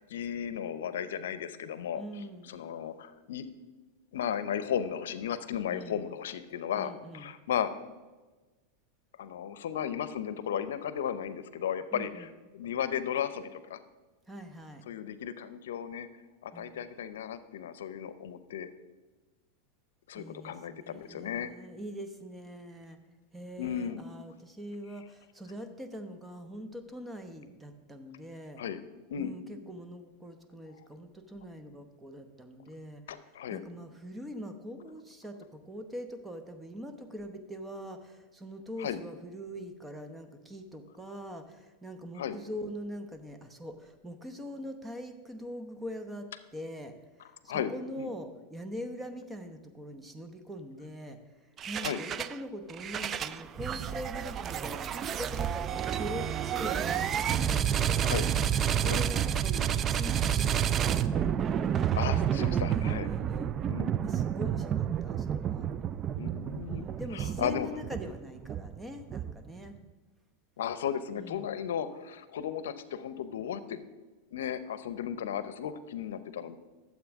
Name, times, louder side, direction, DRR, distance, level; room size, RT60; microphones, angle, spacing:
voice 1, 0.1-3.5 4.1-7.7 9.2-12.3 12.5-13.8 14.9-16.1 16.4-18.7 20.1-21.5 23.6-24.0 28.6-28.8 29.1-29.3 33.1-33.6 38.8-39.0 42.2-42.4 47.5-48.1 51.8-52.0 58.0-58.3 58.8-59.1 61.9-63.1 63.7-64.0 66.2-66.9 67.1-67.7 70.6-73.8 74.3-76.6, left 9 dB, 85° left, 13 dB, 0.6 m, -35 dB
voice 2, 2.0-2.6 5.7-6.0 6.8-7.3 11.9-12.3 14.3-14.8 16.5-16.8 20.1-23.0 23.3-28.6 29.2-33.0 33.5-46.9 47.2-51.2 51.7-58.2 58.7-61.5 62.7-63.6 64.0-65.7 66.6-69.8 71.2-71.5, equal, 10° right, 7 dB, 0.9 m, -43 dB
sound 1, 51.6-52.4 52.7-69.6, right 9 dB, 30° right, 0.4 m, -30 dB
12.5 x 7.6 x 3.6 m, 1.2 s
supercardioid pair, 125°, 0 cm